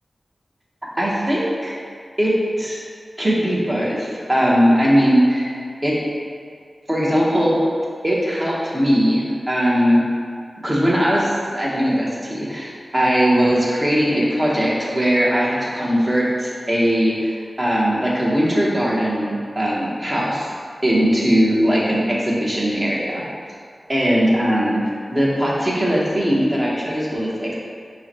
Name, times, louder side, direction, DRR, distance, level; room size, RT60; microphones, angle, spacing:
voice 1, 0.9-1.7 2.2-2.3 2.6-2.8 3.2-6.0 6.9-7.6 8.0-10.0 10.6-20.5 20.8-23.2 23.9-24.8 25.1-27.5, equal, 25° right, -5 dB, 1.1 m, -19 dB
5.4 x 2.3 x 4.2 m, 2.1 s
cardioid pair, 50°, 0 cm